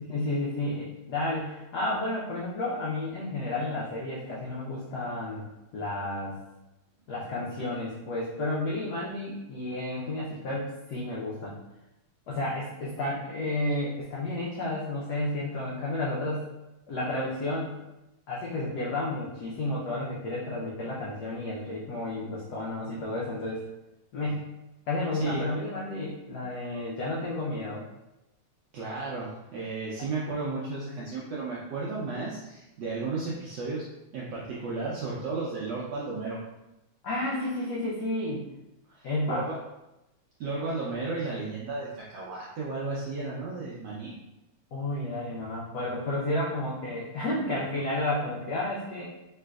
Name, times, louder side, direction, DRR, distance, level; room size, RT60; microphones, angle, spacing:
voice 1, 0.1-5.5 5.7-6.3 7.1-11.5 12.3-16.5 16.9-17.8 18.3-23.6 24.1-24.5 24.9-27.8 30.0-30.1 37.0-38.5 39.0-39.5 44.7-49.0, left 2 dB, 85° left, -5 dB, 0.8 m, -31 dB
voice 2, 28.7-33.8 34.1-36.4 38.9-39.5 40.4-44.1, right 3 dB, 75° right, -6 dB, 0.9 m, -34 dB
3.3 x 2.9 x 2.3 m, 0.94 s
omnidirectional pair, 2.4 m